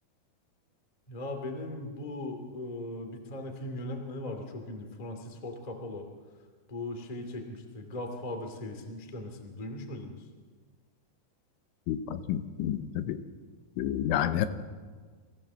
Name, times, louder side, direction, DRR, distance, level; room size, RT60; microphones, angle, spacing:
voice 1, 1.1-6.1 6.7-10.3, left 1 dB, 20° left, 4 dB, 1.0 m, -39 dB
voice 2, 11.9-13.2 13.8-14.5, left 10 dB, 90° left, 11 dB, 3.4 m, -29 dB
24.0 x 15.5 x 7.4 m, 1.5 s
omnidirectional pair, 5.3 m